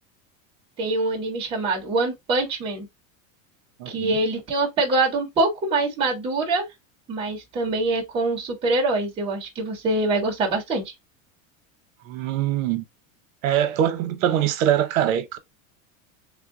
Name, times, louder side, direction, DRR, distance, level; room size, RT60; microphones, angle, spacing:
voice 1, 0.8-2.9 3.9-6.7 7.1-10.9, right 2 dB, 15° right, 0.7 m, -24 dB
voice 2, 3.8-4.2 12.1-12.9 13.4-15.4, right 10 dB, 75° right, 0.8 m, -23 dB
3.5 x 2.2 x 3.5 m
supercardioid pair, 180°, 40 cm